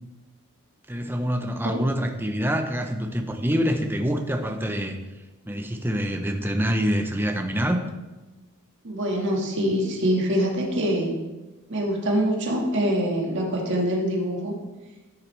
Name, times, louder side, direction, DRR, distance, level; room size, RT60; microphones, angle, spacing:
voice 1, 0.9-5.0 5.5-7.8, equal, 10° right, 5 dB, 0.7 m, -26 dB
voice 2, 8.8-11.2 11.7-14.6, equal, 55° right, -1 dB, 1.8 m, -24 dB
13.5 x 7.5 x 3.3 m, 1.1 s
head